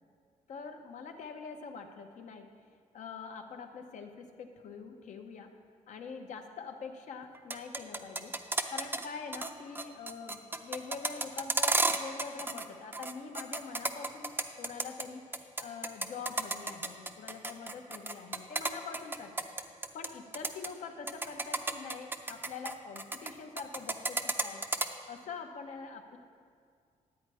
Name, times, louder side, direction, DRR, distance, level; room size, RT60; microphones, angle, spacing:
voice 1, 0.5-2.5 2.9-5.5 5.9-8.3 8.7-19.3 19.9-24.7 25.1-26.2, left 5 dB, 70° left, 5 dB, 0.9 m, -44 dB
sound 1, 7.3-9.0 9.3-9.5 9.7-12.6 12.9-15.0 15.3-20.1 20.3-20.7 21.1-23.3 23.6-24.9, right 3 dB, 15° right, 0.5 m, -32 dB
10.5 x 8.4 x 4.8 m, 2.2 s
cardioid pair, 130°, 13 cm